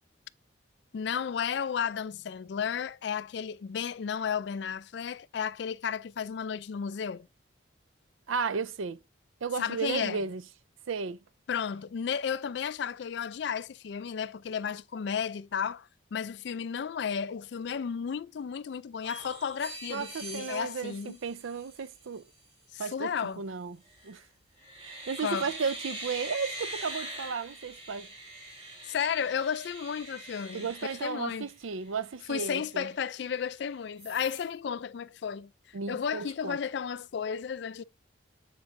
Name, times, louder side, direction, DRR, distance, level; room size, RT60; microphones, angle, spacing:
voice 1, 0.9-7.3 9.6-10.2 11.5-21.2 22.7-23.4 25.2-25.5 28.8-30.7 31.0-31.5 32.3-35.5 35.9-37.8, left 7 dB, 60° left, 0.3 m, -33 dB
voice 2, 8.3-9.0 9.4-10.4 10.9-11.2 19.9-22.3 22.8-23.8 24.0-24.2 24.8-28.1 30.5-32.9 35.7-36.6, right 5 dB, 90° right, 0.5 m, -34 dB
sound 1, 19.0-22.0 23.9-24.2 24.6-31.9 32.3-32.4 32.7-33.6 34.0-34.5, right 1 dB, 35° right, 3.7 m, -43 dB
7.5 x 7.0 x 2.6 m
head